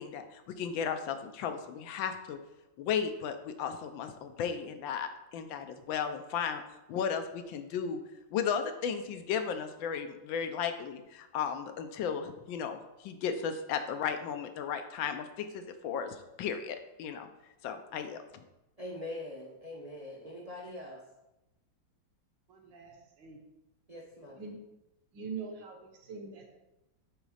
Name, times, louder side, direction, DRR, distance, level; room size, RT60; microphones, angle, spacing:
voice 1, 0.0-2.4 2.8-6.6 6.9-8.0 8.3-17.3 17.6-18.4, left 7 dB, 90° left, 8 dB, 1.4 m, -35 dB
voice 2, 18.8-21.0 23.9-24.4, left 1 dB, 40° right, -1 dB, 0.5 m, -43 dB
voice 3, 22.5-23.4 24.3-24.6 25.1-26.5, right 5 dB, 70° right, 2 dB, 1.7 m, -43 dB
6.6 x 4.0 x 4.9 m, 0.96 s
omnidirectional pair, 2.1 m